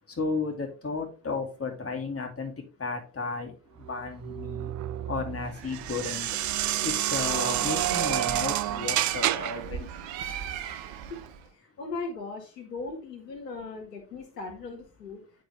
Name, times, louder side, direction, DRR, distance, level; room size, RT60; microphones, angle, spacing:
voice 1, 0.2-2.5 2.8-3.5 3.9-4.7 5.1-6.3 6.8-9.9, left 4 dB, 30° left, 1 dB, 2.4 m, -33 dB
sound 1, 3.8-9.7, right 13 dB, 40° right, 0.5 m, -29 dB
Bird, 5.4-11.5, right 9 dB, 65° right, 0.9 m, -38 dB
voice 2, 11.1-15.2, left 3 dB, 90° left, 4 dB, 1.0 m, -38 dB
8.5 x 4.6 x 3.4 m, 0.34 s
figure-of-eight pair, 45°, 47 cm